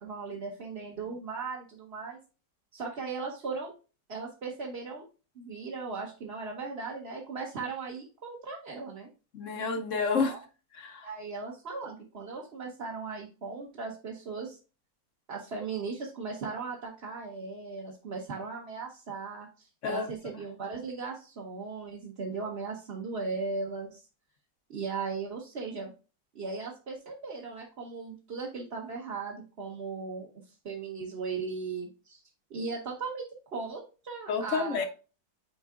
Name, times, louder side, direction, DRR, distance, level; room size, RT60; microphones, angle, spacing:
voice 1, 0.0-2.2 2.7-3.7 4.1-5.1 5.3-9.1 10.3-10.4 11.0-14.6 15.3-24.0 24.7-25.9 26.3-30.3 30.6-32.2 32.5-33.2 33.5-34.9, right 4 dB, 40° right, 1.1 m, -37 dB
voice 2, 9.3-10.4 10.8-11.1 19.8-20.1 34.3-34.9, left 5 dB, 60° left, 0.9 m, -29 dB
8.2 x 4.7 x 2.4 m
omnidirectional pair, 1.9 m